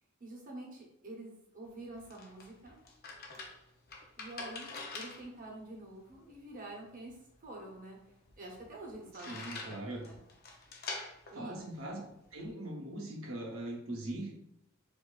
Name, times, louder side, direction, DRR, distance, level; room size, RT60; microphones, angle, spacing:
voice 1, 0.2-2.8 4.2-7.2 7.4-8.0 8.4-10.2 11.3-11.5, right 2 dB, 40° right, -1 dB, 0.8 m, -47 dB
sound 1, 1.6-12.5, left 3 dB, 45° left, 0.6 m, -47 dB
voice 2, 9.2-10.1 11.3-12.0 12.3-14.3, right 1 dB, 70° right, 0 dB, 0.9 m, -41 dB
4.6 x 2.6 x 2.3 m, 0.83 s
head